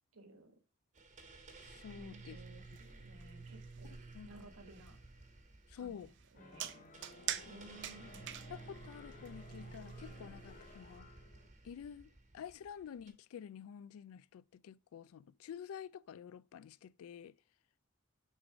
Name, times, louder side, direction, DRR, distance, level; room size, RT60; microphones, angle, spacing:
voice 1, 0.1-0.6 1.9-4.0 4.2-5.0 5.8-6.8 7.1-8.4, right 2 dB, 75° right, 1.3 m, -57 dB
sound 1, 0.9-13.1, right 3 dB, 35° right, 1.1 m, -54 dB
voice 2, 1.6-2.4 4.1-4.3 5.7-6.1 8.5-11.1 11.6-17.3, left 8 dB, 70° left, 0.3 m, -49 dB
sound 2, 2.2-11.0, right 11 dB, 55° right, 0.5 m, -47 dB
sound 3, 6.3-11.5, left 2 dB, 40° left, 0.7 m, -57 dB
6.4 x 3.8 x 4.8 m
head